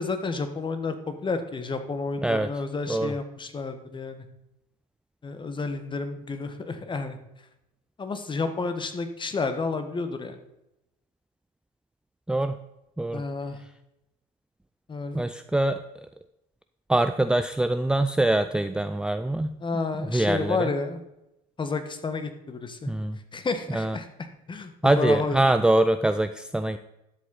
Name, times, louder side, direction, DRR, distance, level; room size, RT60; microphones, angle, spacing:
voice 1, 0.0-4.2 5.2-7.2 8.0-10.4 13.1-13.6 14.9-15.2 19.6-21.0 21.6-22.9 23.3-24.1 24.5-25.4, left 4 dB, 25° left, 9 dB, 1.5 m, -30 dB
voice 2, 15.1-15.8 16.9-19.6 20.0-20.7 22.9-23.2 23.7-24.0 24.8-26.8, right 1 dB, 5° right, 9 dB, 0.5 m, -24 dB
12.0 x 7.4 x 4.0 m, 0.88 s
hypercardioid pair, 70°, 18 cm